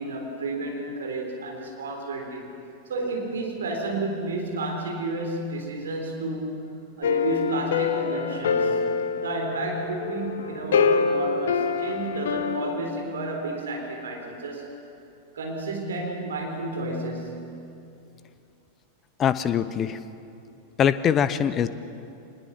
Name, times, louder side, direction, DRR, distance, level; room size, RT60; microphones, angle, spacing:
voice 1, 0.0-2.6 2.9-6.6 7.0-8.9 9.2-14.7 15.3-17.5, right 2 dB, 65° right, 1 dB, 3.9 m, -31 dB
sound 1, 7.0-12.7, left 6 dB, 60° left, 1.1 m, -25 dB
voice 2, 19.2-20.0 20.8-21.7, left 8 dB, 25° left, 14 dB, 0.9 m, -22 dB
25.0 x 20.5 x 6.1 m, 2.6 s
figure-of-eight pair, 90°, 0 cm